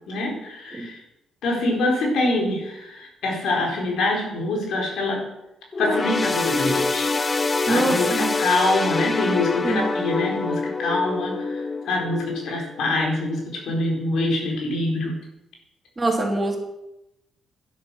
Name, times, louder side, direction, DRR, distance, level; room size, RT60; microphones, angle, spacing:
voice 1, 0.1-0.9 1.4-5.3 5.8-7.1 7.7-15.2, left 2 dB, 75° left, 0 dB, 4.5 m, -25 dB
sound 1, 5.7-13.4 13.8-14.0 14.9-15.0, left 3 dB, 25° left, 0.7 m, -26 dB
voice 2, 7.7-8.3 9.6-9.9 16.0-16.6, right 2 dB, 25° right, 1 dB, 3.2 m, -24 dB
11.5 x 11.0 x 6.3 m, 0.90 s
cardioid pair, 90°, 0 cm